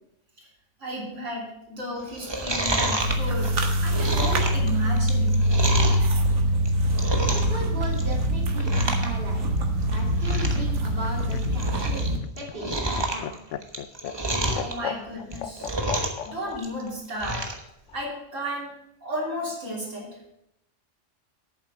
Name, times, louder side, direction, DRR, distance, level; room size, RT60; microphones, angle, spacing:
voice 1, 0.8-3.6 3.8-5.4 14.6-15.7 16.2-17.5 17.9-18.7 19.0-20.2, equal, 85° right, -4 dB, 3.5 m, -33 dB
Chewing mastication, 2.1-6.1 6.5-7.6 7.9-8.2 8.5-9.1 9.4-9.5 9.9-10.0 10.2-10.6 11.0-12.1 12.4-14.7 15.2-16.3 16.5-17.6 18.0-18.1, right 1 dB, 20° right, 1.2 m, -28 dB
sound 1, 3.0-12.2, equal, 70° right, 1.5 m, -24 dB
voice 2, 7.3-9.4 9.9-13.3, right 1 dB, 45° right, -4 dB, 2.8 m, -37 dB
Laughter, 10.9-16.6 17.9-18.5, left 10 dB, 80° left, 1.0 m, -35 dB
8.9 x 7.4 x 6.0 m, 0.79 s
omnidirectional pair, 1.3 m